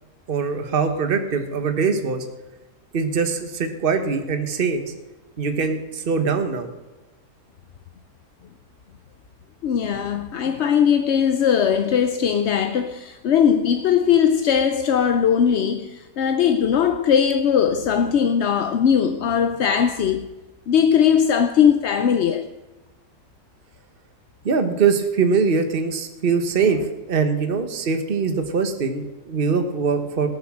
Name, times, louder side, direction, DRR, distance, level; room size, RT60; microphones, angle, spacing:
voice 1, 0.3-2.2 2.9-4.8 5.4-6.7 24.4-26.8 27.1-30.3, right 5 dB, 40° right, 1.3 m, -22 dB
voice 2, 9.6-20.3 20.7-22.5, left 8 dB, 60° left, 0.8 m, -19 dB
18.0 x 7.2 x 6.2 m
omnidirectional pair, 1.5 m